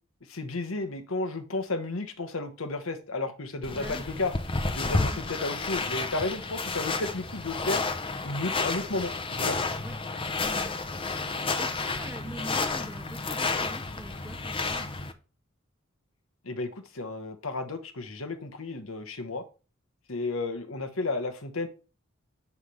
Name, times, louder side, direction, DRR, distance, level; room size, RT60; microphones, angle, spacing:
voice 1, 0.3-4.3 4.7-7.8 8.2-9.6 16.4-19.4 20.1-21.7, left 2 dB, 75° left, 8 dB, 1.2 m, -33 dB
sound 1, 3.6-15.1, left 3 dB, 25° left, 0.7 m, -31 dB
voice 2, 3.7-4.0 5.0-5.2 9.8-10.0 10.4-10.8 11.2-14.9, right 1 dB, 10° right, 4 dB, 1.2 m, -44 dB
9.8 x 3.4 x 5.6 m, 0.34 s
head